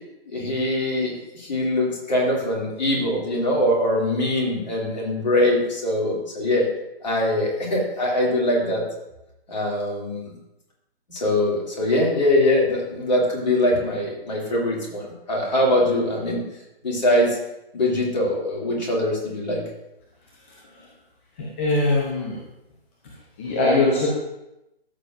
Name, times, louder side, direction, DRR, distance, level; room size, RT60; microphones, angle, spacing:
voice 1, 0.3-6.7 7.0-8.8 9.5-10.3 11.1-16.4 16.8-17.4 17.7-19.6, left 1 dB, 45° left, -2 dB, 2.6 m, -22 dB
voice 2, 20.5-20.9 21.4-22.4 23.4-24.1, left 2 dB, 10° left, -3 dB, 0.6 m, -22 dB
13.5 x 6.9 x 2.5 m, 0.91 s
figure-of-eight pair, 135°, 31 cm